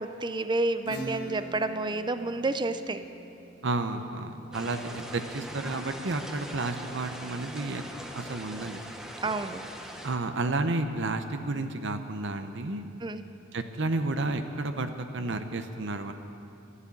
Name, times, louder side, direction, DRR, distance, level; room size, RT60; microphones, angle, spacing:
voice 1, 0.0-3.0 9.2-9.6 13.0-13.2, right 2 dB, 25° right, 10 dB, 0.5 m, -30 dB
Acoustic guitar / Strum, 0.9-6.2, right 1 dB, 60° left, 1.4 m, -44 dB
voice 2, 3.6-7.8 8.2-8.8 10.0-12.8 13.5-16.1, right 2 dB, 65° right, 8 dB, 0.8 m, -31 dB
sound 1, 4.5-10.2, equal, 5° right, 1.0 m, -41 dB
14.5 x 11.5 x 8.5 m, 2.7 s
head